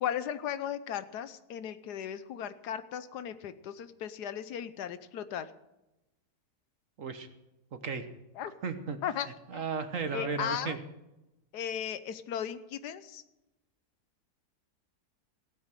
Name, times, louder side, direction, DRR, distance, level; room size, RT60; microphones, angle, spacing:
voice 1, 0.0-5.5 8.4-8.5 9.0-9.3 9.5-9.6 10.1-10.8 11.5-13.2, left 9 dB, 90° left, 13 dB, 1.4 m, -36 dB
voice 2, 7.7-8.0 8.6-9.0 9.2-10.8, right 5 dB, 55° right, 8 dB, 1.4 m, -35 dB
16.0 x 8.9 x 6.6 m, 0.97 s
omnidirectional pair, 1.7 m